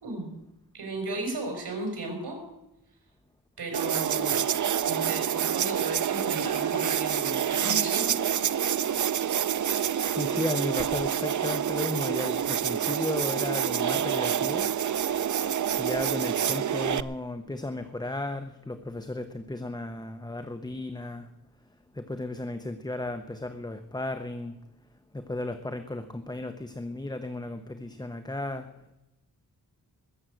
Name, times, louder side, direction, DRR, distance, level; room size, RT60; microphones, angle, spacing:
voice 1, 0.7-2.4 3.6-4.4 4.8-8.3, right 2 dB, 85° right, 2 dB, 4.8 m, -35 dB
sound 1, 3.7-17.0, right 9 dB, 50° right, 0.5 m, -27 dB
voice 2, 10.1-14.7 15.8-21.3 21.9-24.5 25.1-28.7, left 2 dB, 10° left, 8 dB, 0.7 m, -34 dB
21.0 x 7.3 x 7.7 m, 0.93 s
wide cardioid pair, 135°, 38 cm